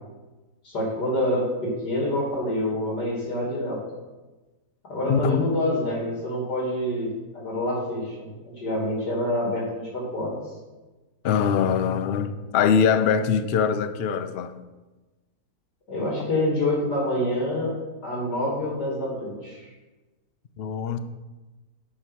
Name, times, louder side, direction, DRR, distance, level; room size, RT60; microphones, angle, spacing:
voice 1, 0.6-3.8 4.9-7.1 7.3-10.4 15.9-17.7 18.0-19.7, left 1 dB, 70° left, -2 dB, 3.4 m, -27 dB
voice 2, 5.1-5.5 11.2-14.5 20.6-21.0, left 7 dB, 90° left, 10 dB, 0.5 m, -22 dB
8.8 x 5.5 x 6.3 m, 1.2 s
omnidirectional pair, 1.8 m